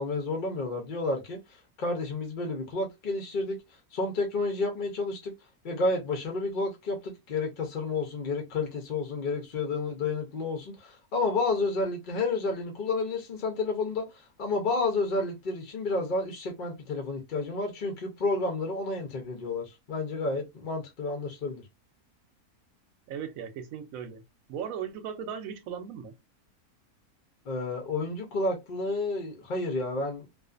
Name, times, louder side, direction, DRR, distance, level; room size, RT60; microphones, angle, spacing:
voice 1, 0.0-1.4 1.8-3.6 3.9-5.3 5.6-21.6 27.5-30.3, left 3 dB, 55° left, 0.5 m, -30 dB
voice 2, 23.1-24.2 24.5-26.1, right 8 dB, 70° right, 1.0 m, -37 dB
2.4 x 2.4 x 2.4 m
omnidirectional pair, 1.6 m